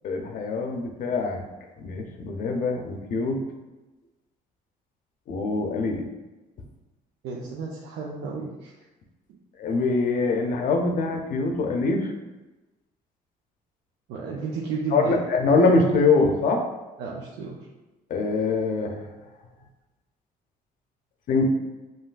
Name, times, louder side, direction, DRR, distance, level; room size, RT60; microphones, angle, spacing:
voice 1, 0.0-1.4 1.8-3.4 5.3-6.0 9.6-12.1 14.9-16.6 18.1-19.0 21.3-21.4, left 3 dB, 55° left, 4 dB, 0.6 m, -23 dB
voice 2, 7.2-8.7 9.3-9.4 14.1-15.2 17.0-17.6, right 4 dB, 85° right, -3 dB, 0.6 m, -32 dB
5.5 x 2.6 x 2.5 m, 1.1 s
cardioid pair, 110°, 17 cm